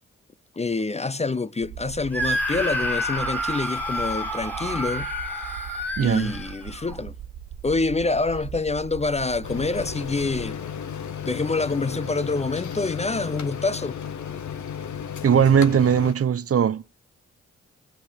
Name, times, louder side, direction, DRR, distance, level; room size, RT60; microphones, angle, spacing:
voice 1, 0.6-5.1 6.0-7.1 7.6-10.6 11.2-14.0, left 3 dB, 20° left, 0.6 m, -26 dB
sound 1, 1.6-10.5, right 10 dB, 80° right, 0.9 m, -40 dB
Screaming, 2.1-7.0, equal, 5° left, 2.1 m, -29 dB
voice 2, 6.0-6.3 15.2-16.8, right 8 dB, 55° right, 0.6 m, -19 dB
sound 2, 9.4-16.1, left 8 dB, 80° left, 0.9 m, -34 dB
15.5 x 5.5 x 8.7 m
supercardioid pair, 40°, 29 cm